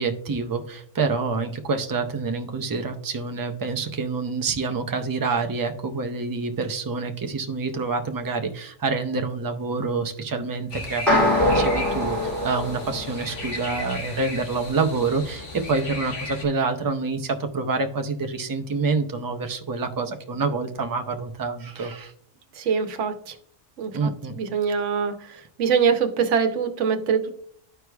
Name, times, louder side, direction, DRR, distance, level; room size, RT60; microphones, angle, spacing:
voice 1, 0.0-22.1 23.9-24.4, right 4 dB, 35° right, 6 dB, 0.3 m, -27 dB
sound 1, 10.7-16.4, left 2 dB, 50° left, 1.2 m, -36 dB
sound 2, 11.1-13.5, left 1 dB, ahead, 2.7 m, -23 dB
voice 2, 22.5-23.4 23.8-27.3, right 6 dB, 70° right, 7 dB, 1.1 m, -24 dB
13.5 x 4.7 x 2.3 m, 0.63 s
omnidirectional pair, 1.3 m